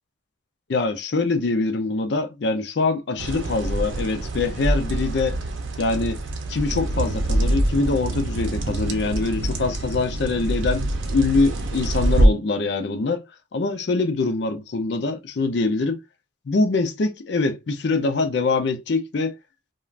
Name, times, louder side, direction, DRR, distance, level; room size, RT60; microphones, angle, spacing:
voice 1, 0.7-5.4 5.8-6.2 6.5-10.9 11.1-13.2 13.5-16.0 16.5-19.4, left 3 dB, 65° left, 0.4 m, -24 dB
sound 1, 3.2-12.3, right 1 dB, 90° right, 0.6 m, -25 dB
2.4 x 2.2 x 3.1 m
head